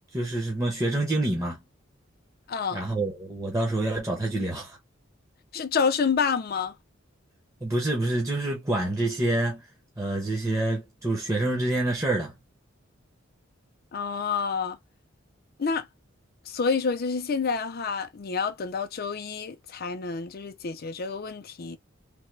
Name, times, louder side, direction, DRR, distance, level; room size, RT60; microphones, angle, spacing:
voice 1, 0.1-1.6 2.7-4.8 7.6-9.6 10.0-12.3, right 2 dB, 15° right, 0.8 m, -27 dB
voice 2, 2.5-2.8 5.5-6.7 13.9-14.8 15.6-15.9 16.5-21.8, left 5 dB, 50° left, 0.5 m, -28 dB
3.4 x 2.1 x 3.1 m
head